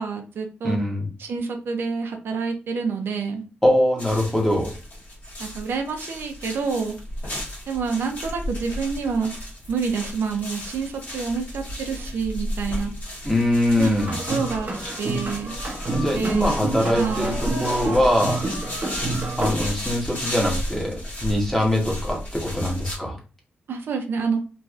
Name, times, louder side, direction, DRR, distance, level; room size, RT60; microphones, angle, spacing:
voice 1, 0.0-0.8 1.2-3.4 5.4-6.9 7.7-9.3 9.7-12.9 13.8-13.9 14.3-14.7 15.0-15.5 16.2-16.6 17.0-17.4 23.7-24.4, right 5 dB, 85° right, 4 dB, 0.5 m, -27 dB
voice 2, 0.6-1.0 3.6-4.7 13.2-14.1 15.9-18.4 19.1-23.2, left 1 dB, 10° left, -2 dB, 1.1 m, -22 dB
sound 1, 4.0-23.0, equal, 45° left, 1.4 m, -33 dB
sound 2, 14.0-19.7, right 2 dB, 40° right, 0.8 m, -29 dB
3.0 x 2.6 x 2.4 m, 0.35 s
wide cardioid pair, 120°, 4 cm